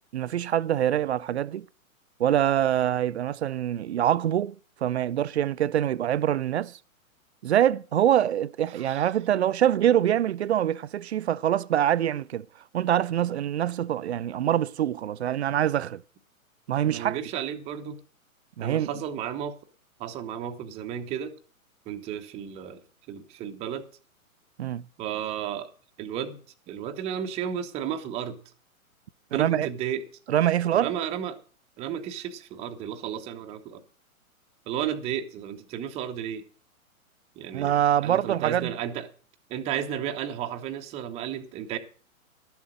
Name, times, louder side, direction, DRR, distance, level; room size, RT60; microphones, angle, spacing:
voice 1, 0.1-1.7 2.2-4.6 4.8-6.8 7.4-12.5 12.7-16.0 16.7-17.2 18.6-18.9 24.6-24.8 29.3-29.7 30.3-30.9 37.5-38.7, right 11 dB, 50° right, 0.4 m, -24 dB
voice 2, 8.7-9.0 16.9-18.0 18.6-19.6 20.0-21.3 21.9-22.8 23.1-23.8 25.0-25.7 26.0-26.4 26.7-28.4 29.3-30.0 30.7-31.4 31.8-33.8 34.7-36.4 37.4-37.7 38.0-39.1 39.5-41.8, right 9 dB, 15° right, 0.8 m, -33 dB
12.0 x 7.2 x 6.4 m
figure-of-eight pair, 120°, 43 cm